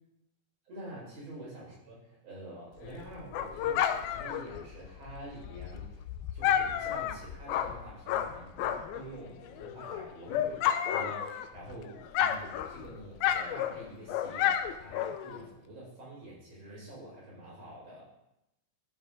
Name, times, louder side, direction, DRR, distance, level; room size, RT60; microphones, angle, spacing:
voice 1, 0.7-5.9 6.3-18.1, right 1 dB, 40° right, -6 dB, 5.9 m, -47 dB
Dog, 2.8-9.1 9.4-11.7 12.0-15.4, left 10 dB, 85° left, 2.4 m, -31 dB
13.0 x 7.9 x 3.8 m, 0.85 s
omnidirectional pair, 4.4 m